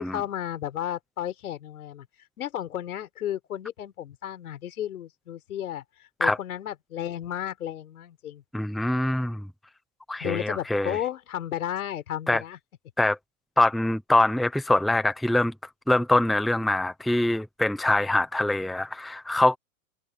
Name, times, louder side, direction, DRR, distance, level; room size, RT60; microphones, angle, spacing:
voice 1, 0.1-2.1 2.4-5.8 6.2-8.4 10.2-12.6, left 11 dB, 85° left, 5.9 m, -33 dB
voice 2, 8.5-9.5 10.1-11.0 12.3-12.4 13.0-13.2 13.6-15.5 15.9-19.6, left 2 dB, ahead, 0.8 m, -24 dB
supercardioid pair, 155°, 43 cm